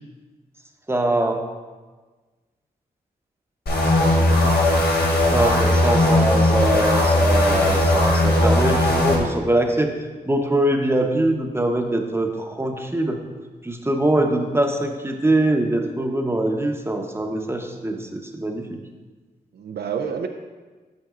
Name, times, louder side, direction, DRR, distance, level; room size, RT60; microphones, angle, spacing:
voice 1, 0.9-1.4 4.4-4.5 5.3-9.9 10.3-13.2 13.6-18.7, right 1 dB, 15° right, 3 dB, 0.8 m, -22 dB
sound 1, 3.7-9.2, left 1 dB, 70° left, 1.2 m, -18 dB
voice 2, 4.0-4.4 19.5-20.3, right 6 dB, 75° right, 5 dB, 0.4 m, -29 dB
9.2 x 5.3 x 2.4 m, 1.3 s
cardioid pair, 60°, 17 cm